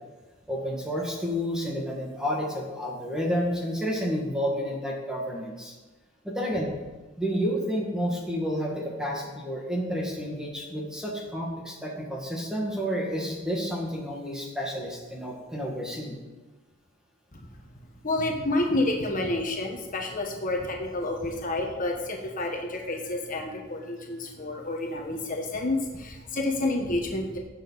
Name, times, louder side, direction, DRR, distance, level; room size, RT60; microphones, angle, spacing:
voice 1, 0.5-5.7 6.2-6.7 7.2-16.2, equal, 5° right, -2 dB, 2.1 m, -30 dB
voice 2, 18.0-27.4, left 2 dB, 45° left, 1 dB, 1.3 m, -29 dB
17.0 x 6.9 x 4.1 m, 1.2 s
head